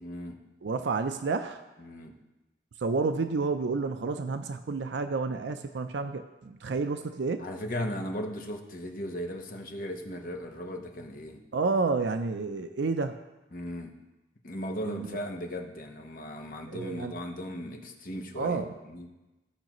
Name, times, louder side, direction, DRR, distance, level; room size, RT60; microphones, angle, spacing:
voice 1, 0.0-0.4 1.8-2.1 7.4-11.4 13.5-13.9 14.4-19.1, equal, 50° left, 2 dB, 1.0 m, -37 dB
voice 2, 0.6-1.6 2.8-7.4 11.5-13.2 14.8-15.1 16.7-17.1 18.4-18.7, right 4 dB, 80° right, 8 dB, 0.5 m, -30 dB
16.0 x 5.8 x 3.0 m, 1.1 s
head